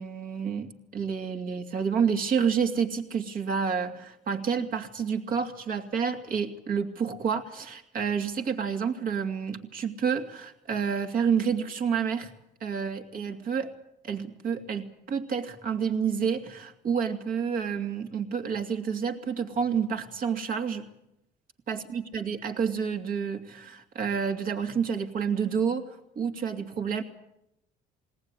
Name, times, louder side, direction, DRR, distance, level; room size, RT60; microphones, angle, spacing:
voice 1, 0.0-12.3 12.6-13.7 14.0-20.9 21.7-25.9 26.2-27.0, right 6 dB, 55° right, 6 dB, 2.5 m, -29 dB
21.5 x 18.0 x 9.8 m, 0.83 s
cardioid pair, 110°, 17 cm